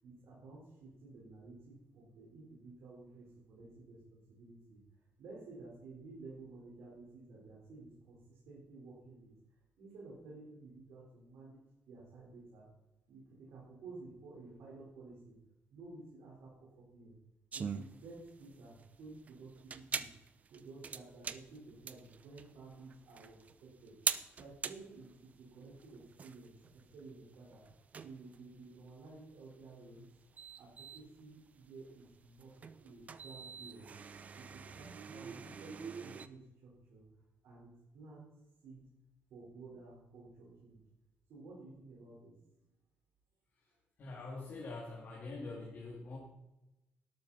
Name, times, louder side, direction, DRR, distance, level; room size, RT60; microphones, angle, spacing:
voice 1, 0.0-4.8 5.2-9.3 9.8-11.6 11.9-12.7 13.1-15.4 15.7-17.2 17.5-20.1 20.5-24.0 24.4-27.7 28.0-30.1 30.6-33.9 34.3-37.1 37.4-38.3 38.6-38.9 39.3-40.8 41.3-42.4, right 3 dB, 80° right, -5 dB, 4.4 m, -53 dB
sound 1, 17.5-36.3, right 6 dB, 35° right, 0.5 m, -44 dB
voice 2, 44.0-46.2, left 3 dB, 45° left, -2 dB, 2.3 m, -44 dB
12.0 x 12.0 x 4.2 m, 0.94 s
cardioid pair, 170°, 5 cm